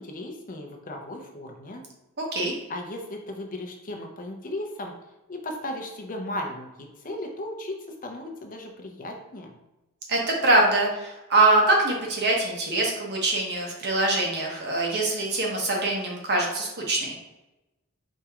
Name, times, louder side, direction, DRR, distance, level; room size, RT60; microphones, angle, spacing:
voice 1, 0.0-1.8 2.7-4.9 5.3-9.5, left 1 dB, 40° left, 3 dB, 0.7 m, -36 dB
voice 2, 10.1-17.2, right 2 dB, 50° right, 0 dB, 1.1 m, -23 dB
4.6 x 3.0 x 3.6 m, 1.0 s
head